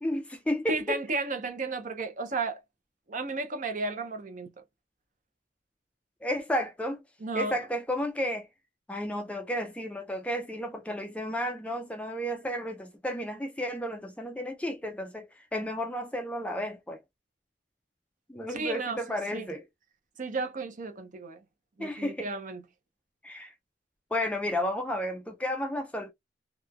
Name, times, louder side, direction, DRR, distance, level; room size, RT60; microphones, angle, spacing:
voice 1, 0.0-1.0 6.2-7.0 7.3-8.5 8.9-17.0 18.3-19.6 21.8-22.3 23.2-23.5 24.1-26.1, left 1 dB, 5° left, 0.4 m, -32 dB
voice 2, 0.7-2.6 3.1-4.5 7.2-7.5 18.5-19.0 19.3-19.5 20.2-21.4 21.8-22.6, right 3 dB, 45° right, 0.6 m, -33 dB
3.0 x 2.2 x 2.4 m
head